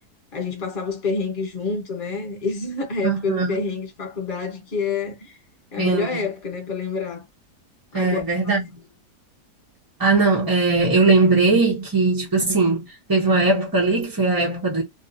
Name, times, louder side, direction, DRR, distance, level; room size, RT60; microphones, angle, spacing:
voice 1, 0.3-5.3 5.7-7.2 7.9-8.2, left 4 dB, 35° left, 1.3 m, -27 dB
voice 2, 3.0-3.6 5.8-6.2 7.9-8.8 10.0-12.8 13.1-14.8, right 3 dB, 20° right, 0.5 m, -19 dB
3.1 x 2.8 x 2.7 m
omnidirectional pair, 1.7 m